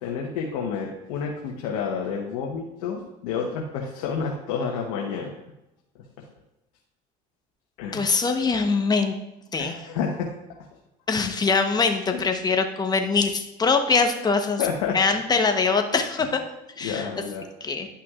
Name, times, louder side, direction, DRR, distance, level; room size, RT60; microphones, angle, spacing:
voice 1, 0.0-5.3 7.8-8.1 9.6-10.6 12.1-12.2 14.6-15.0 16.8-17.5, left 6 dB, 85° left, 0 dB, 1.1 m, -29 dB
voice 2, 7.9-9.1 9.5-9.8 11.1-14.6 14.9-16.4 16.8-17.1 17.6-17.9, left 4 dB, 20° left, 6 dB, 1.0 m, -23 dB
11.0 x 5.8 x 2.4 m, 0.92 s
supercardioid pair, 100°, 19 cm